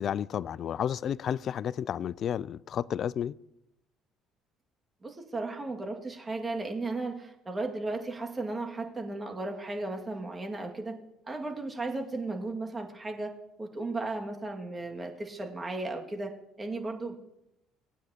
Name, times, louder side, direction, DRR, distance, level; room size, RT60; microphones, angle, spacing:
voice 1, 0.0-3.3, left 9 dB, 55° left, 0.3 m, -31 dB
voice 2, 5.0-11.0 11.3-16.3 16.6-17.1, right 2 dB, 25° right, 2.0 m, -35 dB
18.5 x 9.1 x 2.9 m
hypercardioid pair, 60°, 0 cm